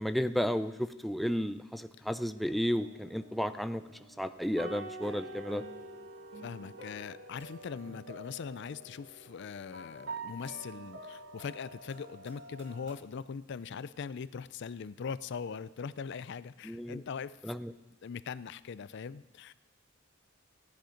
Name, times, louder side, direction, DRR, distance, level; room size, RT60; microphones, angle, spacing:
voice 1, 0.0-3.8 4.2-5.6 16.6-17.0 17.4-17.7, equal, ahead, 10 dB, 0.4 m, -33 dB
sound 1, 2.4-13.0, right 2 dB, 65° right, 2.0 m, -47 dB
voice 2, 6.4-17.5 18.0-19.5, left 6 dB, 60° left, 17 dB, 0.4 m, -41 dB
15.5 x 10.5 x 5.1 m, 1.1 s
head